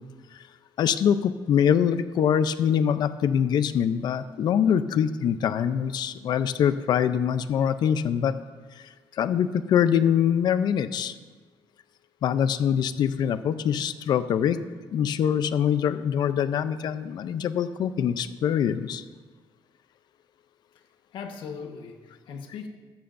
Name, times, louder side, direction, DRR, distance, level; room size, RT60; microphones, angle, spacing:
voice 1, 0.8-8.3 8.8-11.1 12.2-14.6 14.9-19.0, left 8 dB, 60° left, 12 dB, 0.5 m, -24 dB
voice 2, 21.1-22.7, left 6 dB, 75° left, 4 dB, 1.3 m, -39 dB
14.0 x 13.0 x 2.6 m, 1.4 s
cardioid pair, 170°, 8 cm